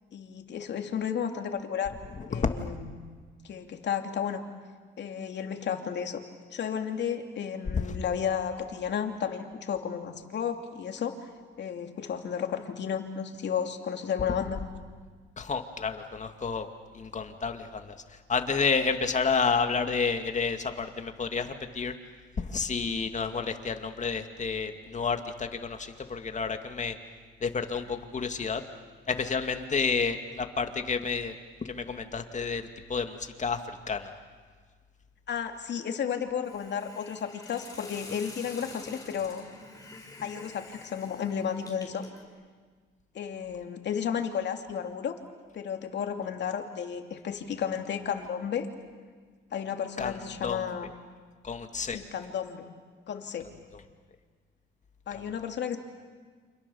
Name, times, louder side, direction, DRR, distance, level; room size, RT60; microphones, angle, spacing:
voice 1, 0.1-2.0 2.3-3.0 3.4-4.4 5.0-6.2 6.5-11.2 11.6-14.6 35.3-39.4 40.2-42.0 43.1-45.2 45.5-48.7 49.5-50.9 51.8-52.6 53.1-53.5 55.1-55.8, left 8 dB, 60° left, 5 dB, 2.7 m, -33 dB
voice 2, 2.2-2.5 7.8-8.0 15.4-16.7 16.9-18.0 18.3-21.9 22.4-27.0 27.4-28.6 29.1-31.3 31.7-33.6 33.9-34.1 50.0-50.1 50.4-50.6 51.4-52.0 55.1-55.2, left 5 dB, 35° left, 6 dB, 2.3 m, -30 dB
Hiss, 36.4-42.2, left 2 dB, 15° left, 5.2 m, -48 dB
29.0 x 27.0 x 7.2 m, 1.5 s
cardioid pair, 90°, 20 cm